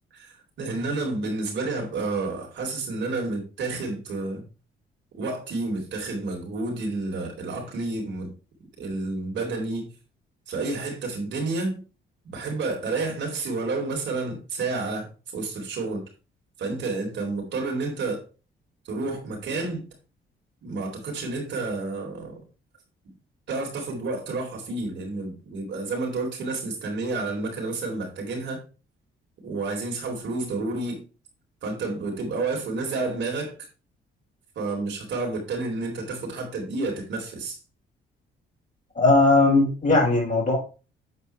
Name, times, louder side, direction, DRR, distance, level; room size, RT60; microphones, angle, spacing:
voice 1, 0.1-4.4 5.1-8.3 8.8-9.9 10.5-11.8 12.2-15.1 15.3-16.0 16.6-18.2 18.9-19.8 20.6-22.4 23.5-28.6 29.4-31.0 31.6-33.6 34.6-37.6, right 3 dB, 70° right, 3.9 m, -30 dB
voice 2, 39.0-40.6, left 2 dB, 40° left, 5.4 m, -18 dB
8.9 x 4.6 x 4.7 m
cardioid pair, 90°, 20 cm